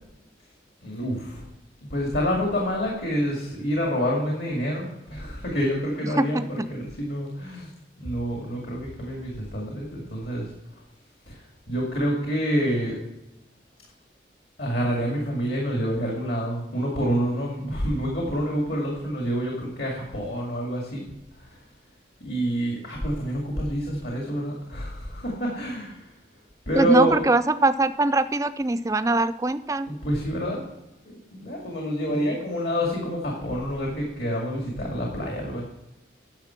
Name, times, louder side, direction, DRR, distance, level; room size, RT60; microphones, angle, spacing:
voice 1, 0.8-1.4 1.9-7.7 8.0-10.5 11.3-11.4 11.7-13.0 14.6-21.0 21.4-21.6 22.2-26.1 26.7-27.2 29.9-30.6 31.1-35.6, equal, 65° left, -1 dB, 2.1 m, -27 dB
voice 2, 6.2-6.7 26.7-29.9 32.1-32.4, right 2 dB, 15° right, 12 dB, 0.4 m, -22 dB
10.5 x 6.6 x 5.7 m, 0.93 s
head